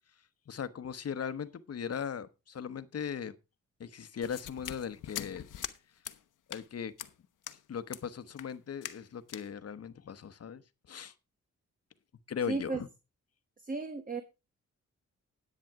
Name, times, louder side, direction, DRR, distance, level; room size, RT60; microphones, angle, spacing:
voice 1, 0.5-3.3 3.8-5.5 6.5-6.9 7.7-10.6 10.9-11.1 12.3-12.9, left 7 dB, 50° left, 13 dB, 1.1 m, -38 dB
sound 1, 4.2-5.8 6.0-6.2 6.5-6.7 7.0-7.1 7.4-7.6 7.9-8.0 8.4-8.5 8.8-9.0 9.3-9.5, left 11 dB, 80° left, 1.0 m, -42 dB
voice 2, 12.5-12.8 13.6-14.2, right 3 dB, 25° right, 9 dB, 1.2 m, -34 dB
10.5 x 8.7 x 4.8 m, 0.28 s
cardioid pair, 95°, 31 cm